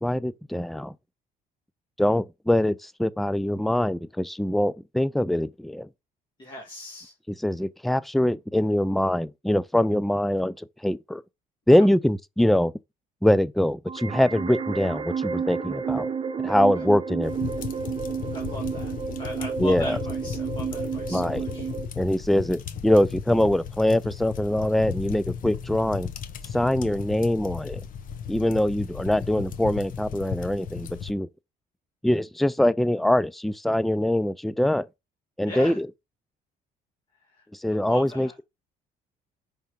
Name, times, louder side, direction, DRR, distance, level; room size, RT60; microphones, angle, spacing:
voice 1, 0.0-0.9 2.0-5.9 7.4-11.2 11.7-12.7 13.2-16.1 16.4-17.5 19.6-20.0 21.1-21.4 22.0-26.1 26.5-27.8 28.3-31.3 32.0-34.9 35.4-35.9 37.6-38.4, left 1 dB, ahead, 0.3 m, -23 dB
voice 2, 6.4-7.1 11.7-11.8 18.3-21.7 35.4-35.8 37.4-37.5 37.8-38.3, left 1 dB, 25° left, 2.1 m, -39 dB
sound 1, 13.9-21.9, right 6 dB, 35° right, 0.8 m, -31 dB
sound 2, 17.2-31.1, left 7 dB, 55° left, 0.9 m, -36 dB
5.5 x 3.6 x 5.2 m
cardioid pair, 110°, 17 cm